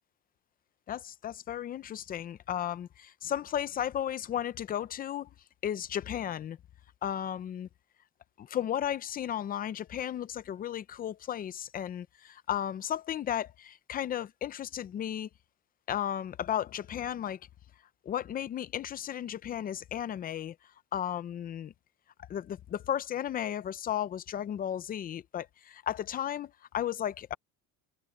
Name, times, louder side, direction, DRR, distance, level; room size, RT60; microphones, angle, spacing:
voice 1, 0.9-5.3 5.6-6.6 7.0-7.7 8.4-15.3 15.9-17.4 18.1-20.6 20.9-21.7 22.3-27.3, left 10 dB, 30° left, 0.5 m, -34 dB
cardioid pair, 170°, 32 cm